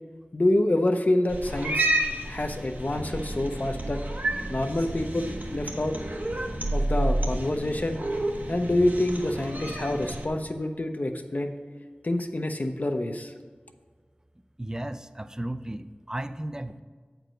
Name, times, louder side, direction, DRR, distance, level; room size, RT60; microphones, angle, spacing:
voice 1, 0.3-2.0 2.2-4.0 4.5-6.0 6.7-8.0 8.5-11.5 12.0-13.3, left 1 dB, 55° left, 5 dB, 0.6 m, -27 dB
Cat, 1.3-10.3, right 1 dB, 60° right, 1.0 m, -30 dB
Explosion, 6.3-7.9, right 1 dB, 80° right, 2.1 m, -47 dB
voice 2, 14.6-16.8, right 1 dB, 20° right, 12 dB, 0.4 m, -34 dB
7.9 x 4.6 x 5.1 m, 1.5 s
wide cardioid pair, 45°, 3 cm